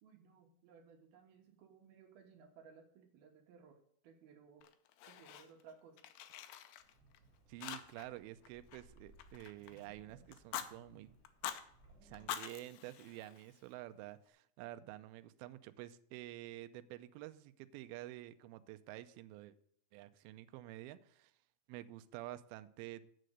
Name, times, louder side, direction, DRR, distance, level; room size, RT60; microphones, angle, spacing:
voice 1, 0.0-4.7 5.1-6.0, right 6 dB, 70° right, 4 dB, 2.8 m, -60 dB
Fire, 4.6-5.7 6.0-7.2 7.6-8.2 8.4-9.8 10.3-10.7 11.2-11.6 12.1-13.7, left 11 dB, 80° left, 2.1 m, -46 dB
Wind, 6.8-12.3, right 2 dB, 15° right, 3.3 m, -64 dB
voice 2, 7.5-11.1 12.0-19.6 19.9-21.3 21.7-23.1, right 15 dB, 85° right, 11 dB, 2.1 m, -50 dB
7.5 x 6.4 x 7.9 m, 0.66 s
omnidirectional pair, 4.9 m